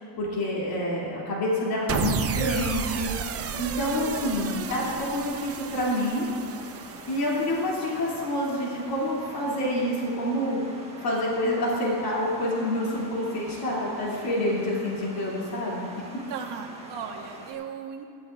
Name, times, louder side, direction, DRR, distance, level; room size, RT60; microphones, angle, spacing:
voice 1, 0.0-3.1 3.6-6.3 7.1-10.6 11.0-15.9, left 1 dB, 55° left, -6 dB, 3.1 m, -27 dB
sound 1, 1.9-8.2, right 8 dB, 35° right, 0.5 m, -33 dB
sound 2, 2.7-17.5, right 2 dB, 15° right, 1.5 m, -45 dB
voice 2, 16.3-18.1, right 7 dB, 75° right, 3 dB, 1.4 m, -36 dB
15.5 x 12.5 x 2.6 m, 2.6 s
cardioid pair, 145°, 43 cm